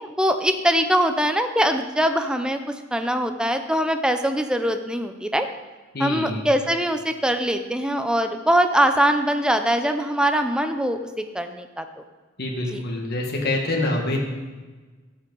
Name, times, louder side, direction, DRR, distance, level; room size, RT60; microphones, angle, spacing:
voice 1, 0.0-5.5 6.0-11.8 12.7-12.8, equal, 5° right, 7 dB, 0.6 m, -22 dB
voice 2, 5.9-6.5 12.4-14.2, left 2 dB, 55° left, 0 dB, 1.5 m, -26 dB
12.5 x 7.2 x 3.9 m, 1.3 s
head